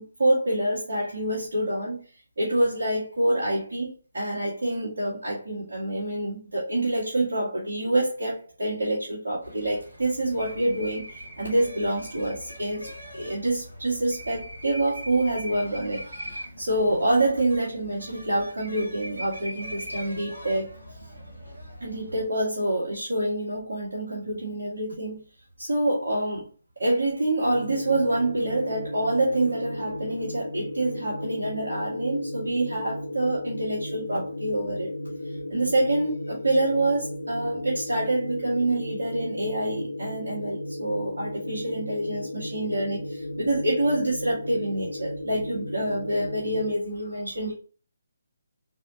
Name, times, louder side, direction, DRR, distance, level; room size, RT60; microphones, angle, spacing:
voice 1, 0.0-2.0 2.4-20.7 21.8-25.2 25.6-26.5 26.8-34.9 35.5-47.5, right 1 dB, 65° right, 1.4 m, -27 dB
sound 1, 9.4-22.3, equal, 85° right, 1.6 m, -41 dB
sound 2, 27.4-46.7, left 1 dB, 70° left, 0.4 m, -35 dB
4.2 x 2.8 x 2.7 m
figure-of-eight pair, 145°, 0 cm